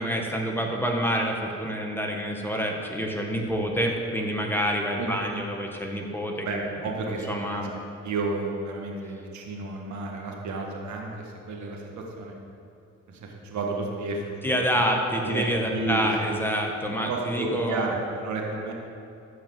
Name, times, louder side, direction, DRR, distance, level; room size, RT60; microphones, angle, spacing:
voice 1, 0.0-6.7 7.3-7.7 14.4-17.9, equal, 5° left, 0 dB, 1.3 m, -27 dB
voice 2, 5.0-5.4 6.4-7.7 8.0-12.3 13.1-14.5 15.2-16.4 17.0-18.7, right 3 dB, 70° right, 0 dB, 1.6 m, -32 dB
12.5 x 4.8 x 7.7 m, 2.6 s
cardioid pair, 90°, 30 cm